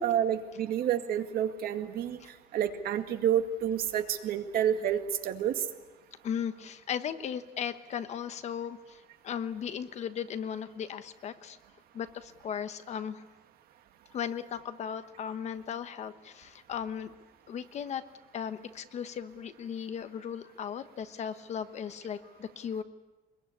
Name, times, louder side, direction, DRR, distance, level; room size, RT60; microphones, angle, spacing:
voice 1, 0.0-2.2 2.5-5.6, right 9 dB, 70° right, 7 dB, 2.1 m, -29 dB
voice 2, 6.2-11.6 11.9-13.2 14.1-17.1 17.5-18.0 18.3-22.8, left 8 dB, 45° left, 11 dB, 1.2 m, -37 dB
24.0 x 21.5 x 9.8 m, 1.1 s
cardioid pair, 175°, 16 cm